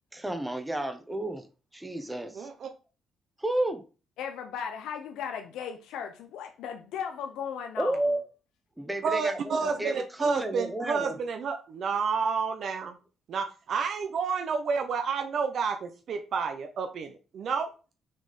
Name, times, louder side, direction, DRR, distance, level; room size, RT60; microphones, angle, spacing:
voice 1, 0.1-1.4 1.7-2.5 3.4-3.8 7.8-8.2 8.8-9.9 10.2-11.2, right 1 dB, 10° right, 7 dB, 1.0 m, -31 dB
voice 2, 2.3-2.7 9.0-13.0 13.3-17.7, right 5 dB, 60° right, 6 dB, 0.8 m, -30 dB
voice 3, 4.2-8.1, left 7 dB, 90° left, 4 dB, 0.8 m, -36 dB
6.2 x 3.7 x 4.2 m, 0.34 s
cardioid pair, 90°, 0 cm